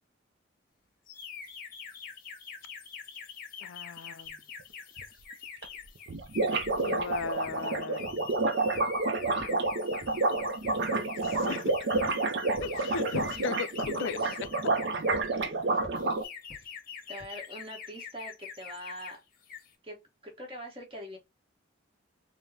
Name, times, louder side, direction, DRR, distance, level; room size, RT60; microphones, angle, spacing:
sound 1, 1.1-15.4 16.0-19.2 19.4-19.7, left 7 dB, 50° left, 0.7 m, -45 dB
voice 1, 3.6-4.4 6.7-8.3 11.0-11.7 12.6-14.2 15.3-15.6 15.9-16.1, left 5 dB, 80° left, 0.4 m, -38 dB
sound 2, 5.0-5.1 5.3-5.4 5.6-5.7 6.0-16.2, right 3 dB, 60° right, 0.5 m, -29 dB
sound 3, 7.4-7.6 8.1-8.4 8.7-9.0 9.4-10.3 10.6-10.9 11.3-11.5 11.9-12.2 12.5-12.8 13.2-13.4 13.8-14.1 14.4-14.7 15.1-15.3 15.8-16.1 16.5-16.7 17.2-17.4, equal, 5° left, 2.1 m, -49 dB
voice 2, 13.3-13.7 14.2-14.4 16.6-16.7 17.1-19.2 19.8-21.2, equal, 30° right, 1.2 m, -44 dB
5.1 x 2.1 x 2.7 m
head